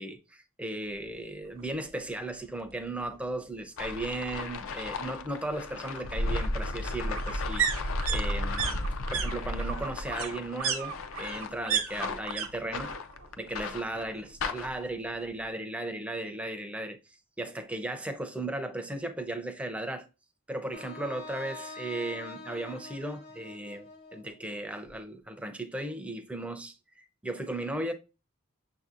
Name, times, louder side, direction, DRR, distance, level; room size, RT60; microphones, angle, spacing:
voice 1, 0.0-12.9 13.4-17.0 17.4-20.1 20.5-27.9, right 1 dB, 5° right, 0.5 m, -36 dB
sound 1, 1.6-1.7 2.1-2.2 2.4-3.4 4.7-12.5 12.7-13.3 13.6-14.6 14.9-15.0, right 8 dB, 70° right, 0.8 m, -35 dB
sound 2, 3.8-14.9, left 2 dB, 70° left, 0.4 m, -34 dB
Wind instrument woodwind instrument, 20.7-24.8, left 3 dB, 50° left, 0.9 m, -45 dB
6.3 x 2.7 x 2.5 m
head